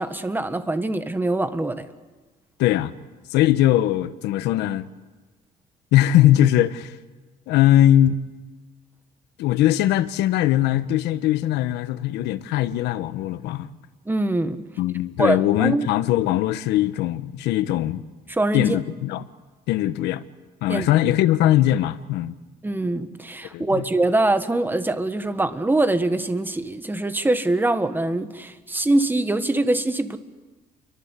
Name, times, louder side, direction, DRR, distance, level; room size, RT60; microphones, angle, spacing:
voice 1, 0.0-1.9 14.1-14.6 15.2-15.9 18.3-18.8 20.7-20.9 22.6-30.2, right 2 dB, 10° right, 1.7 m, -23 dB
voice 2, 2.6-2.9 3.3-4.9 5.9-6.9 7.5-8.2 9.4-13.7 14.8-18.0 18.5-19.2 19.7-20.2 20.6-22.4 23.5-23.8, left 13 dB, 85° left, 1.3 m, -20 dB
30.0 x 23.5 x 8.4 m
cardioid pair, 110°, 17 cm